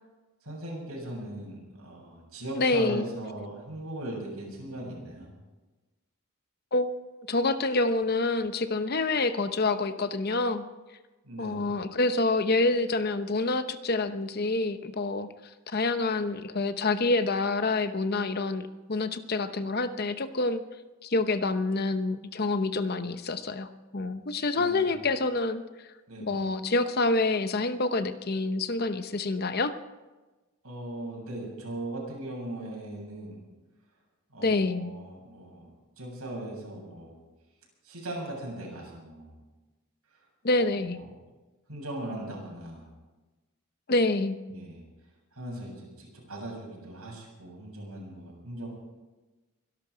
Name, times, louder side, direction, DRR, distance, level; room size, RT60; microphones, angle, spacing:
voice 1, 0.4-5.3 11.2-11.7 24.6-25.1 26.1-26.4 30.6-33.4 34.3-35.7 36.0-37.1 37.8-39.4 40.9-41.0 41.7-42.9 44.5-44.8 45.3-48.7, right 1 dB, 80° right, -2 dB, 7.7 m, -39 dB
voice 2, 2.6-3.1 6.7-10.6 11.4-15.3 15.7-20.6 21.1-25.6 26.2-29.7 34.4-34.9 40.4-41.0 43.9-44.4, left 3 dB, 45° left, 10 dB, 0.8 m, -27 dB
24.0 x 12.0 x 5.0 m, 1.2 s
head